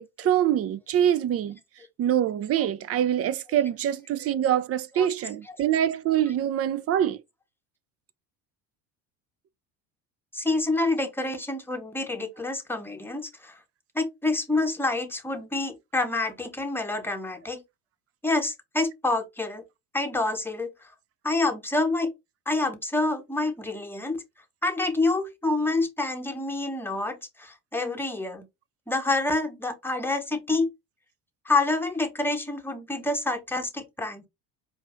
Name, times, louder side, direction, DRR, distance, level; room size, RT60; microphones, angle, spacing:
voice 1, 0.0-1.6 2.0-7.2, right 10 dB, 35° right, 0.4 m, -25 dB
voice 2, 10.3-13.6 13.9-17.6 18.2-19.6 19.9-20.7 21.2-22.1 22.5-24.2 24.6-28.5 28.9-30.7 31.4-34.3, left 2 dB, 5° left, 0.9 m, -27 dB
4.5 x 2.5 x 3.1 m
hypercardioid pair, 65°, 46 cm